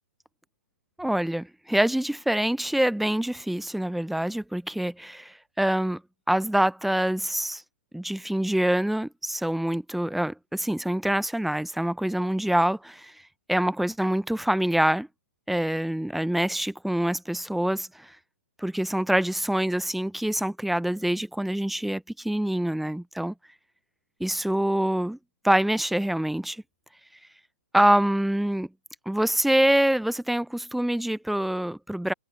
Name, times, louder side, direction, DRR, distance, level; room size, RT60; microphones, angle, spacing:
voice 1, 1.0-6.0 6.3-7.6 7.9-13.1 13.5-15.1 15.5-18.1 18.6-23.3 24.2-25.2 25.4-26.6 27.7-28.7 29.1-32.1, right 1 dB, ahead, 0.7 m, -25 dB
hypercardioid pair, 125°, 8 cm